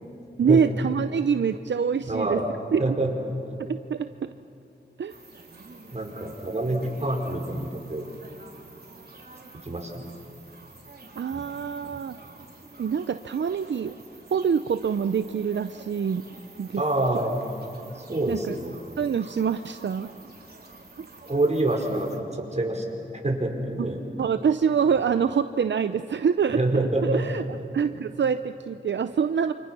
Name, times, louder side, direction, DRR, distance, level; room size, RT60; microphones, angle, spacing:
voice 1, 0.4-2.4 2.7-3.0 3.7-4.3 5.0-5.1 11.2-12.2 12.8-14.0 14.3-16.2 16.6-16.8 18.3-18.6 19.0-20.1 21.0-21.1 24.2-27.4 27.7-29.5, right 7 dB, 75° right, 10 dB, 0.6 m, -25 dB
voice 2, 2.0-2.5 2.8-3.1 5.9-8.0 9.6-10.1 11.3-11.6 11.9-12.0 16.8-17.4 17.9-18.7 21.2-24.0 26.5-27.2 27.5-27.6 27.9-28.0, right 2 dB, 35° right, 1 dB, 5.3 m, -27 dB
sound 1, 5.1-22.2, right 3 dB, 55° right, 3.9 m, -48 dB
28.5 x 27.5 x 6.1 m, 2.9 s
cardioid pair, 55°, 19 cm